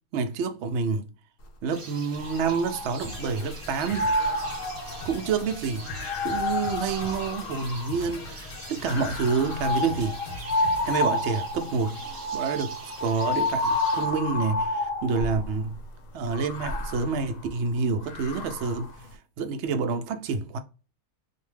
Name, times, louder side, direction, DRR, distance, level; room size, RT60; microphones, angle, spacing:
voice 1, 0.1-1.1 1.6-4.1 5.0-5.9 6.2-10.2 10.8-12.0 12.3-15.8 16.1-18.9 19.4-20.6, right 5 dB, 85° right, 0.6 m, -28 dB
sound 1, 1.7-14.1, right 3 dB, 40° right, 0.9 m, -45 dB
sound 2, 2.2-3.4 3.8-8.1 8.8-15.5 16.3-18.9, left 2 dB, 65° left, 0.9 m, -30 dB
sound 3, 3.0-11.0, left 2 dB, 80° left, 1.3 m, -42 dB
2.6 x 2.1 x 3.2 m
omnidirectional pair, 1.8 m